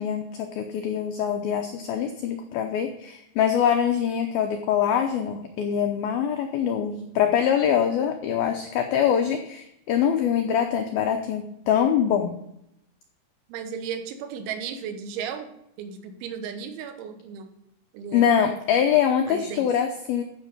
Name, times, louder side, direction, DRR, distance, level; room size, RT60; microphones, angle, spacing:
voice 1, 0.0-12.4 18.1-20.2, left 8 dB, 85° left, 5 dB, 2.1 m, -24 dB
voice 2, 13.5-15.5 15.8-17.5 17.9-18.4 19.3-19.7, right 7 dB, 85° right, 7 dB, 3.5 m, -35 dB
14.5 x 6.3 x 5.2 m, 0.80 s
omnidirectional pair, 5.3 m